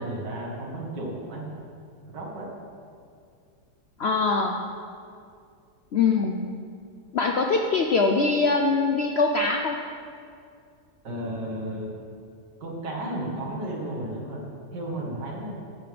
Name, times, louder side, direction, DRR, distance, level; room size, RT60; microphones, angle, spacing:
voice 1, 0.0-1.5 2.1-2.5 11.0-11.9 12.6-14.5 14.7-15.5, right 1 dB, 85° right, -2 dB, 2.4 m, -33 dB
voice 2, 4.0-4.5 5.9-6.4 7.1-9.8, left 4 dB, 65° left, 1 dB, 0.6 m, -22 dB
11.5 x 5.1 x 7.7 m, 2.3 s
omnidirectional pair, 1.8 m